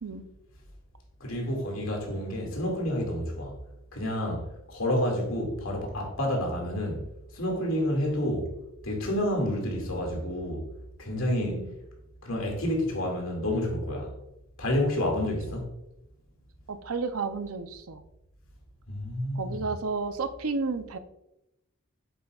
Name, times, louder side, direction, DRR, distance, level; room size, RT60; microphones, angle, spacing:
voice 1, 1.2-3.6 3.9-7.0 7.3-8.5 8.8-10.7 11.0-11.6 12.2-14.1 14.6-15.7 18.9-19.6, left 1 dB, 75° left, 2.3 m, -29 dB
voice 2, 16.7-18.0 19.3-21.0, right 4 dB, 85° right, 0.7 m, -32 dB
8.2 x 7.5 x 2.4 m
head